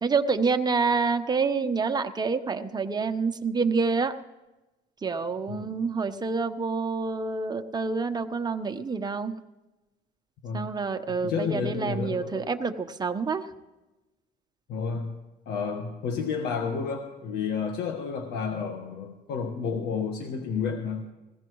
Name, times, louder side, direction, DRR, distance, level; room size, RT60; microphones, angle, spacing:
voice 1, 0.0-4.1 5.0-9.3 10.5-13.4, right 4 dB, 25° right, 7 dB, 1.0 m, -27 dB
voice 2, 5.5-5.8 10.4-10.6 11.2-12.5 14.7-15.1 15.4-21.0, left 5 dB, 80° left, 3 dB, 1.5 m, -31 dB
21.0 x 16.5 x 3.1 m, 1.1 s
cardioid pair, 110°, 17 cm